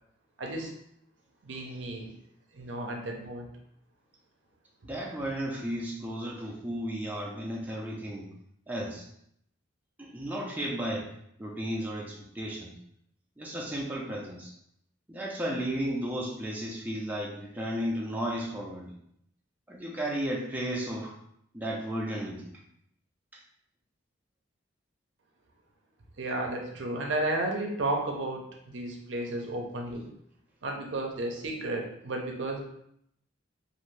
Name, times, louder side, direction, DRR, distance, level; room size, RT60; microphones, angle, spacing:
voice 1, 0.4-0.7 1.4-2.1 2.5-3.5 26.2-30.1 30.6-32.6, right 2 dB, 65° right, 1 dB, 0.5 m, -33 dB
voice 2, 4.8-8.3 8.7-9.0 10.0-11.1 11.4-12.7 13.4-14.5 15.1-19.0 19.7-21.1 21.5-22.6, equal, 10° right, -4 dB, 0.4 m, -34 dB
2.6 x 2.5 x 3.1 m, 0.72 s
head